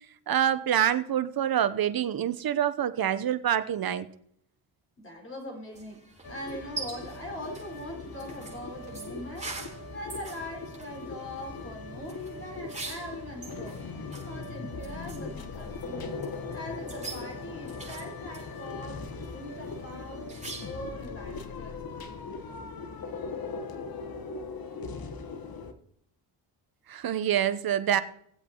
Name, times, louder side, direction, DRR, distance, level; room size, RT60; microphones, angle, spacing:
voice 1, 0.3-4.1 26.9-28.0, right 10 dB, 45° right, 0.9 m, -26 dB
voice 2, 5.0-6.0 6.3-9.6 9.9-13.8 14.2-16.2 16.5-21.9, left 1 dB, 25° left, 5.0 m, -42 dB
sound 1, 5.7-20.9, right 3 dB, 15° right, 4.2 m, -45 dB
sound 2, 6.2-25.7, left 3 dB, 45° left, 1.3 m, -39 dB
18.5 x 8.0 x 3.0 m
supercardioid pair, 60°, 48 cm